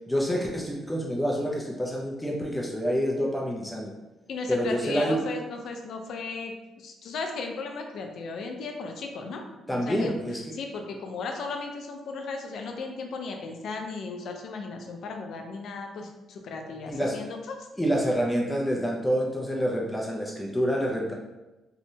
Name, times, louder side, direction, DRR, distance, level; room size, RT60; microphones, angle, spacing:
voice 1, 0.1-3.9 4.5-5.2 9.7-10.6 16.9-17.2 17.8-21.1, equal, 10° left, -2 dB, 0.4 m, -27 dB
voice 2, 4.3-9.4 9.7-10.1 10.5-17.4, left 4 dB, 70° left, 3 dB, 0.4 m, -36 dB
2.7 x 2.1 x 2.7 m, 1.1 s
cardioid pair, 90°, 0 cm